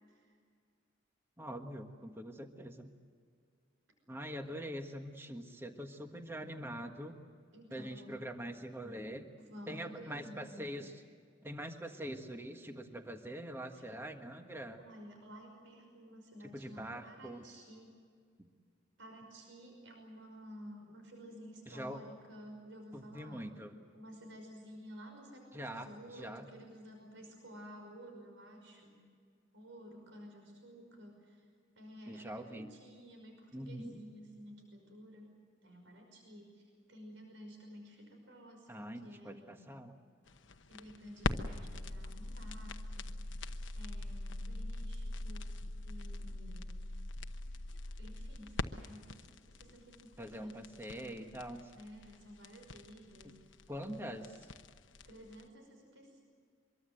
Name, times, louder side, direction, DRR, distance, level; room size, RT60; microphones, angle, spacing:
voice 1, 1.4-2.9 4.1-7.2 7.7-9.3 9.7-10.9 11.4-14.8 16.5-17.4 18.4-18.5 21.7-22.0 22.9-23.8 25.5-25.9 26.2-26.5 32.1-32.7 33.5-34.0 38.7-39.9 50.2-51.6 53.7-54.2, equal, 10° right, 5 dB, 1.5 m, -44 dB
voice 2, 7.5-8.3 9.4-10.7 14.8-18.0 19.0-23.6 23.9-29.0 29.5-31.4 31.8-39.6 40.7-43.2 43.7-46.8 48.0-50.7 50.9-51.4 51.7-54.3 55.1-56.2, equal, 75° right, 3 dB, 5.6 m, -53 dB
sound 1, 40.3-55.4, left 2 dB, 70° left, 1.0 m, -42 dB
24.5 x 23.0 x 7.8 m, 2.1 s
head